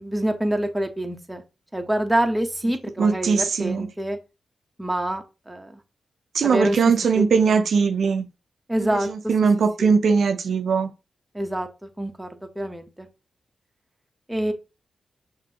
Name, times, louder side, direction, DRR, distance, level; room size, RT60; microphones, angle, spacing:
voice 1, 0.0-1.4 1.7-4.2 4.8-5.8 6.4-6.8 7.1-7.3 8.7-9.1 9.8-9.9 11.3-13.1 14.3-14.5, right 1 dB, 10° right, 0.9 m, -26 dB
voice 2, 3.0-3.9 6.3-8.3 8.8-10.9, right 5 dB, 70° right, 0.4 m, -20 dB
5.9 x 2.6 x 2.9 m
cardioid pair, 55°, 0 cm